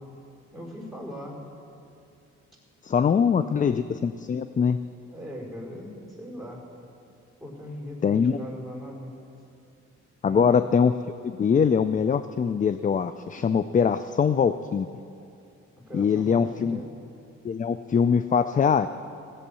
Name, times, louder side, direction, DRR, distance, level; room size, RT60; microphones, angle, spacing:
voice 1, 0.5-1.4 3.0-3.6 5.1-6.6 7.4-9.1 10.2-10.6 15.9-16.9, equal, ahead, -3 dB, 4.3 m, -39 dB
voice 2, 2.8-4.8 8.0-8.4 10.2-11.0 11.2-14.9 15.9-16.8 17.4-18.9, left 6 dB, 25° left, 12 dB, 0.4 m, -23 dB
16.5 x 8.4 x 7.0 m, 2.6 s
cardioid pair, 90°, 30 cm